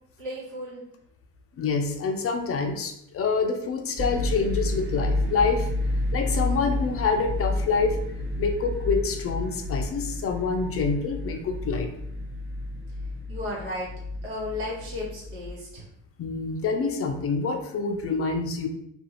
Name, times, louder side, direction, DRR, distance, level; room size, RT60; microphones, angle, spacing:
voice 1, 0.2-0.8 13.3-13.9 14.2-15.9, left 1 dB, 85° right, -5 dB, 1.2 m, -34 dB
voice 2, 1.6-5.7 6.1-8.0 8.4-11.9 16.2-18.7, left 4 dB, 35° left, 5 dB, 0.4 m, -26 dB
sound 1, 4.0-15.5, left 1 dB, 30° right, 1.0 m, -30 dB
2.5 x 2.3 x 2.8 m, 0.75 s
supercardioid pair, 70°, 41 cm